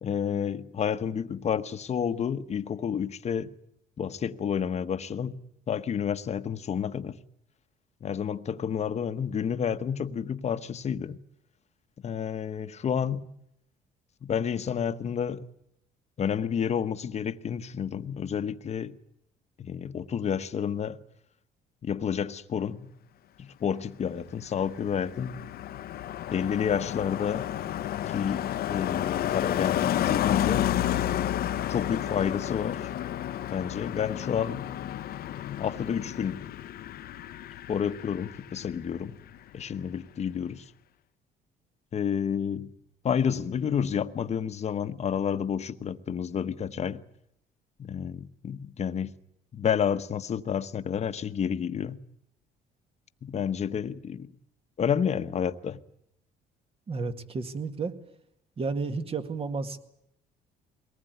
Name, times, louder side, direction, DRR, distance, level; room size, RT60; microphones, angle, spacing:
voice 1, 0.0-3.5 4.0-5.4 5.7-7.2 8.0-11.2 12.0-13.3 14.2-15.4 16.2-19.0 19.6-21.0 21.8-22.9 23.4-25.3 26.3-27.5 28.1-30.7 31.7-32.9 33.5-34.6 35.5-36.4 37.7-39.2 39.5-40.6 41.9-42.7 43.0-47.0 47.8-49.1 49.5-52.0 53.2-54.3 54.8-55.8, left 8 dB, 40° left, 1.2 m, -30 dB
Car passing by, 24.2-39.0 39.3-39.6, left 12 dB, 65° left, 0.9 m, -31 dB
voice 2, 56.9-57.9 58.6-59.8, right 4 dB, 35° right, 2.0 m, -32 dB
22.5 x 19.0 x 9.4 m
cardioid pair, 110°, 17 cm